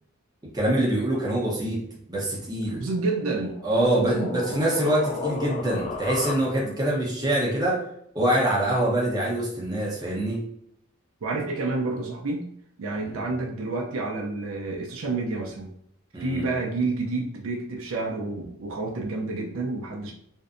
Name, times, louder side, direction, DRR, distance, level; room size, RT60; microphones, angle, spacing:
voice 1, 0.5-1.8 2.1-2.8 3.6-7.8 8.1-10.4 13.0-13.3 16.1-16.4, right 1 dB, 20° right, -4 dB, 0.7 m, -25 dB
voice 2, 2.8-4.6 11.2-12.5 12.8-15.7 16.2-20.1, right 3 dB, 75° right, 0 dB, 0.5 m, -29 dB
sound 1, 3.1-6.9, left 4 dB, 35° left, 0.3 m, -34 dB
2.6 x 2.1 x 2.4 m, 0.69 s
head